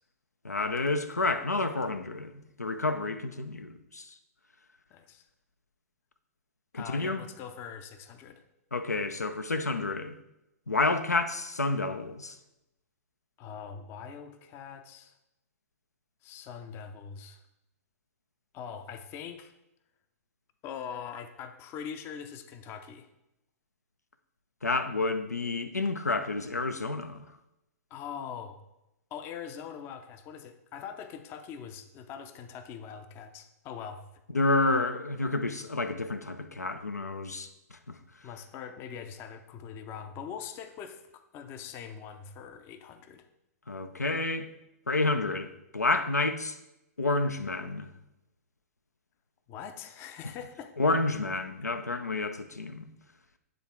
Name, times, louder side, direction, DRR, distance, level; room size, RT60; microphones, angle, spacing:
voice 1, 0.4-4.1 6.7-7.2 8.7-10.1 10.7-12.4 24.6-27.3 34.3-38.0 43.7-44.5 44.9-46.6 47.0-47.9 50.8-52.9, left 2 dB, 80° left, 8 dB, 0.5 m, -29 dB
voice 2, 4.9-5.2 6.7-8.4 13.4-15.1 16.2-17.4 18.5-19.5 20.6-23.1 27.9-28.6 29.1-34.0 38.2-43.2 49.5-50.7, left 7 dB, 25° left, 9 dB, 0.5 m, -42 dB
9.3 x 3.6 x 4.4 m, 0.89 s
figure-of-eight pair, 110°, 9 cm